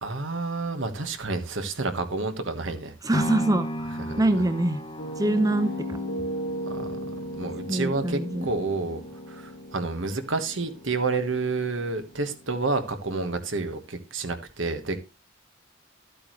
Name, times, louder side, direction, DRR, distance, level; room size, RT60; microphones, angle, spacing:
voice 1, 0.0-2.9 4.0-4.2 6.7-6.9 7.3-9.0 9.3-15.0, right 3 dB, 70° right, 8 dB, 1.4 m, -29 dB
voice 2, 3.0-3.9 4.2-4.8 5.2-5.7 7.7-8.5, right 1 dB, 20° right, 10 dB, 0.6 m, -24 dB
sound 1, 3.1-11.2 11.7-11.8, equal, 25° left, 0.9 m, -36 dB
Piano, 5.0-12.8, equal, 75° left, 2.2 m, -36 dB
12.5 x 8.6 x 3.1 m, 0.27 s
head